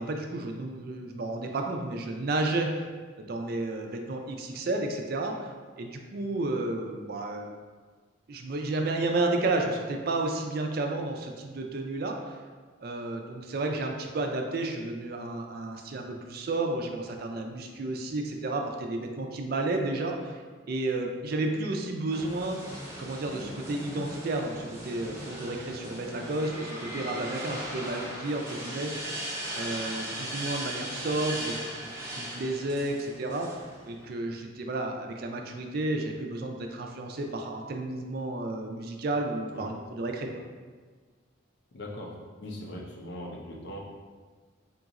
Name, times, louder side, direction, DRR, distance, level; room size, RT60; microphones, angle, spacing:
voice 1, 0.0-2.7 3.2-7.5 8.3-12.4 12.8-20.4 20.7-22.6 23.0-28.9 29.5-40.4, right 2 dB, 50° right, 3 dB, 0.4 m, -32 dB
sound 1, 22.1-34.1, right 1 dB, 15° right, 0.7 m, -38 dB
voice 2, 41.7-43.8, left 1 dB, 55° left, -1 dB, 0.6 m, -40 dB
3.8 x 2.4 x 4.0 m, 1.5 s
head